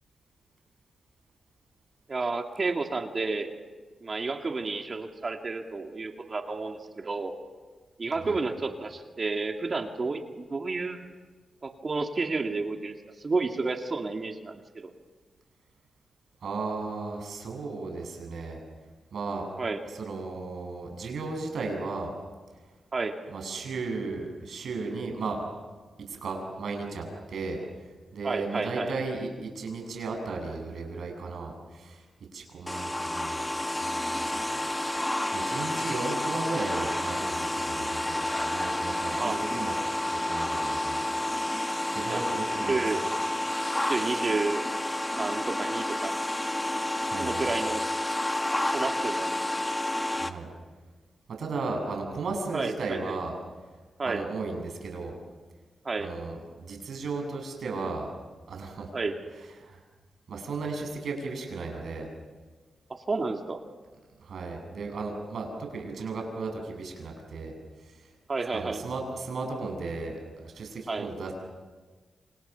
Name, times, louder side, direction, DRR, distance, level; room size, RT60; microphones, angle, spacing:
voice 1, 2.1-3.5 4.0-7.4 8.0-11.0 11.6-13.0 13.2-14.9 19.6-19.9 22.9-23.1 28.2-28.9 39.1-39.4 42.1-42.2 42.6-43.1 43.9-44.7 45.2-46.1 47.2-47.9 48.7-49.3 52.5-53.2 54.0-54.2 55.8-56.1 58.9-59.1 62.9-63.6 68.3-68.8 70.9-71.1, right 3 dB, 40° right, 4 dB, 2.4 m, -31 dB
voice 2, 16.4-18.6 19.1-19.4 19.9-22.1 23.3-25.5 26.1-27.6 28.1-32.0 32.3-33.4 33.7-39.7 40.1-41.0 41.9-42.8 47.0-47.5 50.2-50.5 51.4-53.4 54.0-55.2 56.0-58.1 58.5-58.9 59.6-59.8 60.3-62.1 64.2-67.5 67.8-68.1 68.5-71.3, right 3 dB, 75° right, 2 dB, 7.8 m, -35 dB
sound 1, 32.7-50.3, left 1 dB, 15° left, 1.7 m, -30 dB
28.0 x 28.0 x 7.0 m, 1.4 s
cardioid pair, 75°, 0 cm